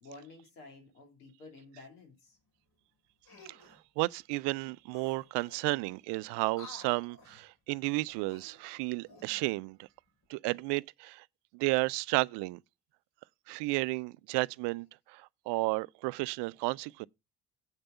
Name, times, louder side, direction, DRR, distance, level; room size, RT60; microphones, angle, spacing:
voice 1, 0.0-2.4, left 2 dB, 85° left, 2.7 m, -52 dB
sound 1, 3.2-3.8 4.6-4.7 4.9-5.8 6.5-7.5 8.1-9.5 10.1-10.3, left 4 dB, 55° left, 4.4 m, -54 dB
voice 2, 4.0-9.8 10.3-11.2 11.5-12.6 13.5-17.1, right 24 dB, 65° right, 0.5 m, -32 dB
8.1 x 5.2 x 6.9 m
hypercardioid pair, 45°, 45 cm